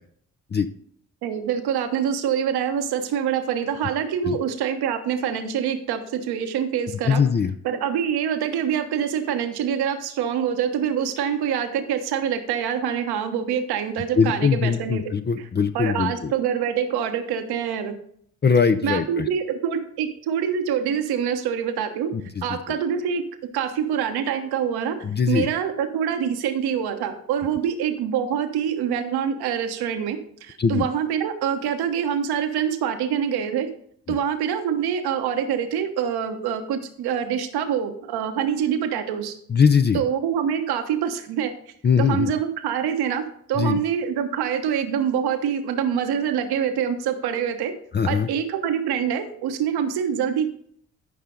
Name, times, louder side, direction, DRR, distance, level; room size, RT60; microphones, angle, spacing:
voice 1, 1.2-7.2 7.6-15.0 15.7-17.9 18.8-22.1 22.4-23.2 23.5-25.0 25.3-33.7 34.1-39.3 39.9-41.5 42.0-47.7 48.1-50.5, right 8 dB, 70° right, 7 dB, 1.2 m, -25 dB
voice 2, 7.0-7.5 14.2-16.3 18.4-19.3 22.1-22.6 25.0-25.5 30.6-30.9 34.1-34.2 39.5-40.0 41.8-42.3 43.5-43.8 47.9-48.3, left 6 dB, 25° left, 9 dB, 0.6 m, -21 dB
13.0 x 5.6 x 3.8 m, 0.66 s
hypercardioid pair, 45°, 40 cm